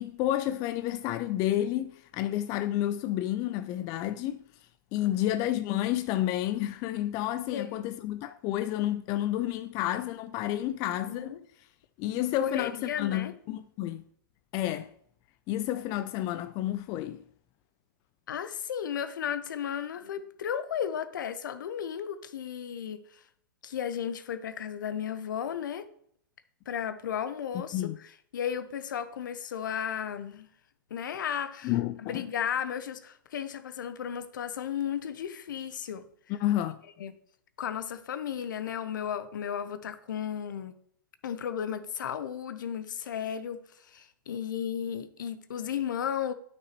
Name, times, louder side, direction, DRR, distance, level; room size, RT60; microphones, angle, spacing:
voice 1, 0.0-4.4 4.9-11.3 12.0-14.0 14.5-14.9 15.5-17.2 27.7-28.0 31.6-32.3 36.3-36.8, left 13 dB, 30° left, 0.4 m, -30 dB
voice 2, 7.5-7.8 10.7-11.4 12.1-13.3 15.6-15.7 18.3-23.2 23.6-25.9 26.7-27.8 28.3-30.5 30.9-31.7 32.0-36.1 37.0-37.1 37.6-40.8 41.2-43.6 43.9-46.3, left 8 dB, 65° left, 0.8 m, -34 dB
9.2 x 6.0 x 3.0 m
hypercardioid pair, 115°, 11 cm